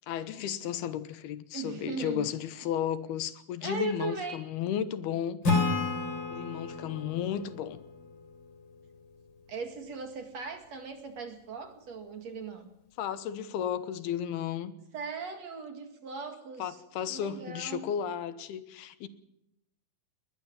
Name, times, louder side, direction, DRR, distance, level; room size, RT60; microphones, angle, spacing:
voice 1, 0.1-5.4 6.3-7.8 13.0-14.7 16.6-19.1, left 9 dB, 85° left, 3.2 m, -34 dB
voice 2, 1.5-2.3 3.6-4.5 9.5-12.7 14.9-16.8 17.1-17.8, right 4 dB, 45° right, 3.0 m, -38 dB
Acoustic guitar / Strum, 5.4-8.9, left 3 dB, 30° left, 3.4 m, -31 dB
21.5 x 20.5 x 7.5 m
omnidirectional pair, 4.5 m